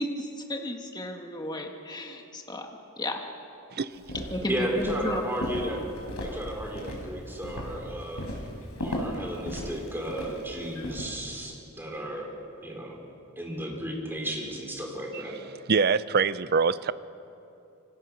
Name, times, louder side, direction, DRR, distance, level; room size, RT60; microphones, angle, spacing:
voice 1, 0.0-2.7 3.0-3.2 4.3-5.2, left 1 dB, 20° left, 3 dB, 1.8 m, -33 dB
Walk footsteps, 4.0-11.0, equal, 80° left, 5.1 m, -36 dB
voice 2, 4.5-5.9 6.2-12.3 12.6-13.0 13.4-15.4, right 1 dB, 10° right, -1 dB, 4.4 m, -34 dB
voice 3, 15.7-16.9, right 5 dB, 45° right, 15 dB, 0.6 m, -24 dB
27.0 x 24.0 x 6.4 m, 2.8 s
head